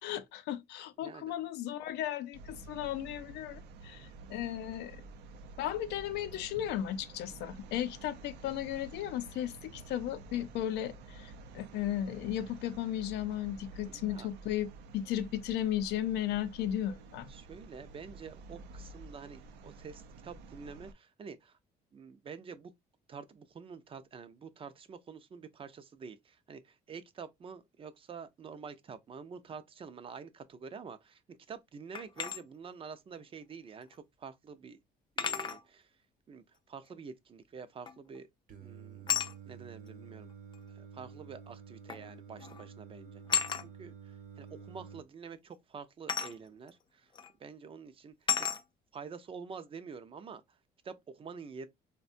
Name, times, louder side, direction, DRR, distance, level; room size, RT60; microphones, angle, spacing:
voice 1, 0.0-5.0 5.6-14.7 14.9-17.3, left 11 dB, 85° left, 0.5 m, -35 dB
voice 2, 1.0-1.3 13.9-14.3 17.3-21.6 21.9-22.7 23.1-34.8 35.2-35.9 36.3-38.3 38.6-39.1 39.5-40.3 40.7-47.1 47.4-48.5 48.9-50.6 50.8-51.7, right 5 dB, 35° right, 0.4 m, -48 dB
sound 1, 2.3-20.9, right 3 dB, 85° right, 0.5 m, -50 dB
sound 2, 31.9-32.4 33.9-34.0 35.2-35.6 37.9-38.2 39.1-39.3 40.5-40.6 41.9-42.1 42.4-42.7 43.3-43.7 46.1-46.4 47.2-47.3 48.3-48.6, left 7 dB, 30° left, 0.4 m, -32 dB
Singing, 38.5-45.0, right 6 dB, 55° right, 0.9 m, -50 dB
3.5 x 2.2 x 2.4 m
cardioid pair, 110°, 17 cm